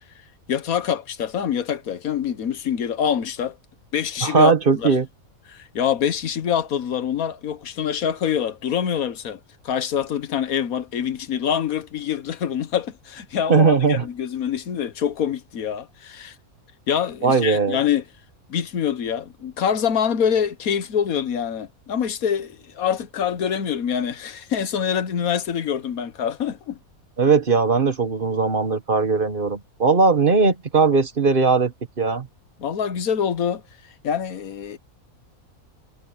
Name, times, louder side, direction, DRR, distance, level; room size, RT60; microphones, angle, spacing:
voice 1, 0.5-3.5 3.9-4.9 5.5-9.4 9.6-16.3 16.9-18.0 18.5-26.8 32.6-33.6 34.0-34.8, left 8 dB, 75° left, 1.5 m, -25 dB
voice 2, 4.2-5.1 13.5-14.0 17.2-17.8 27.2-32.3, right 4 dB, 40° right, 1.3 m, -19 dB
omnidirectional pair, 1.5 m